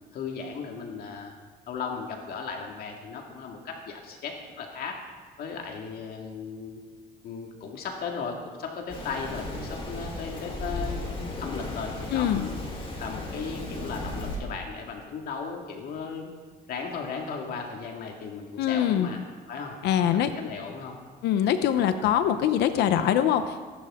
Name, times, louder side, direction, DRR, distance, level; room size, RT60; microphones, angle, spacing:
voice 1, 0.1-1.3 1.7-5.0 5.4-6.8 7.2-12.6 13.0-16.3 16.7-19.2 19.5-19.8 20.1-21.0, left 5 dB, 65° left, 1 dB, 2.1 m, -36 dB
Rain, 8.9-14.4, left 1 dB, 35° left, 4.0 m, -35 dB
voice 2, 12.1-12.5 18.6-19.1 19.8-20.3 21.2-23.7, left 10 dB, 80° left, 9 dB, 0.9 m, -23 dB
23.5 x 11.5 x 3.7 m, 1.5 s
cardioid pair, 110°, 17 cm